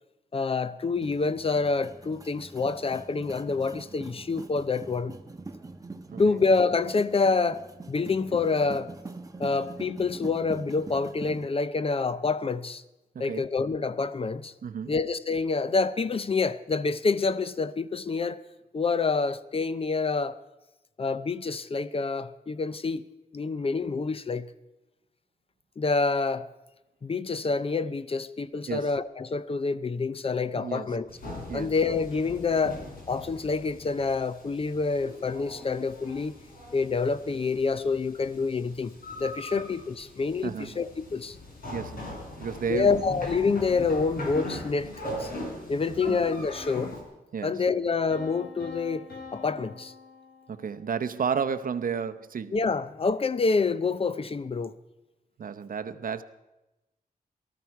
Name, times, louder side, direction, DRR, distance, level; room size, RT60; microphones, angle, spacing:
voice 1, 0.3-5.2 6.2-8.9 9.4-12.8 13.2-14.5 14.9-18.4 18.7-20.4 21.0-23.0 23.3-24.5 25.8-26.5 27.0-31.1 31.5-36.4 36.7-41.4 42.7-45.3 45.7-47.0 47.4-49.1 49.3-49.9 52.5-54.7, left 4 dB, 35° left, 0.5 m, -27 dB
sound 1, 0.9-11.4, right 3 dB, 20° right, 1.1 m, -43 dB
voice 2, 13.1-13.5 14.6-14.9 28.7-28.9 30.5-30.9 31.5-31.7 39.5-39.6 40.4-40.8 41.7-42.9 46.1-46.2 47.3-47.6 50.5-52.6 55.4-56.2, right 6 dB, 60° right, 0.7 m, -32 dB
sound 2, 31.1-47.0, left 1 dB, 70° left, 3.7 m, -40 dB
sound 3, 48.1-51.0, left 4 dB, 90° left, 4.9 m, -45 dB
18.0 x 13.5 x 4.7 m
wide cardioid pair, 125°, 16 cm